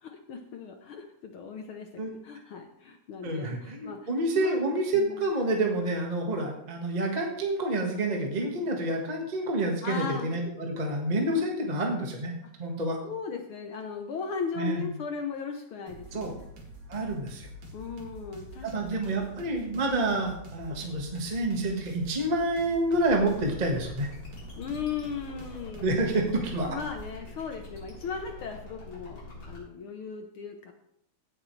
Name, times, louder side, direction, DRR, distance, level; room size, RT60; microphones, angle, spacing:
voice 1, 0.0-4.0 4.3-4.6 4.9-5.3 9.8-10.3 11.7-11.8 13.0-16.5 17.7-18.7 19.2-19.3 24.6-25.9 26.6-30.7, left 6 dB, 75° left, 4 dB, 1.2 m, -37 dB
voice 2, 3.2-12.3 12.6-13.0 14.6-14.9 16.1-16.3 16.9-17.5 18.6-24.1 25.8-26.8, right 2 dB, 30° right, 1 dB, 0.7 m, -28 dB
sound 1, 15.9-27.2, equal, 60° right, 3.3 m, -46 dB
sound 2, 22.9-29.6, left 2 dB, 40° left, 4.9 m, -45 dB
16.5 x 7.8 x 3.2 m, 0.76 s
omnidirectional pair, 3.5 m